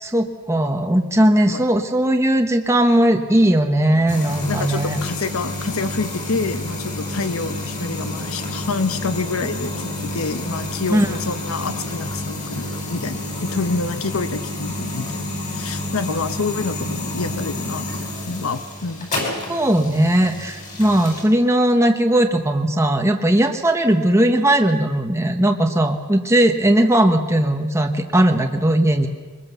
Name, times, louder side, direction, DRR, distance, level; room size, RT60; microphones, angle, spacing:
voice 1, 0.0-5.0 10.9-11.1 19.5-29.1, right 1 dB, 15° right, 4 dB, 1.0 m, -18 dB
sound 1, 4.1-21.2, left 1 dB, 35° left, 5.2 m, -29 dB
voice 2, 4.5-19.1, left 3 dB, 85° left, 10 dB, 1.0 m, -27 dB
22.5 x 20.5 x 6.9 m, 1.5 s
head